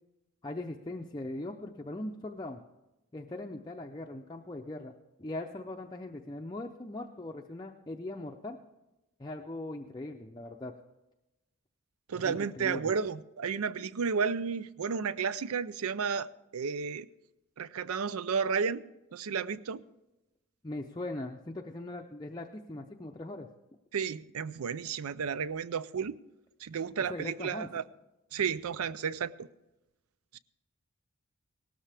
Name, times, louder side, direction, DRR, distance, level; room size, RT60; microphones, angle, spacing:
voice 1, 0.4-2.6 3.1-4.9 5.2-8.6 9.2-10.7 12.1-12.9 20.6-23.5 27.1-27.7, left 2 dB, 20° left, 0.5 m, -40 dB
voice 2, 12.1-17.1 17.6-18.8 19.1-19.8 23.9-26.2 26.6-27.8 28.3-29.3 30.3-30.4, right 6 dB, 85° right, 0.5 m, -32 dB
18.0 x 13.0 x 3.4 m
head